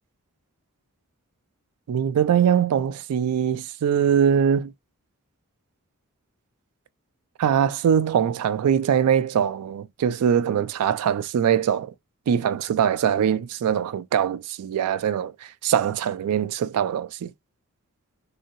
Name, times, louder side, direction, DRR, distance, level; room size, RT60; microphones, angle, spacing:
voice 1, 1.9-4.7 7.4-11.9 12.3-15.3 15.6-17.3, right 8 dB, 80° right, 0.3 m, -22 dB
2.7 x 2.6 x 2.7 m
head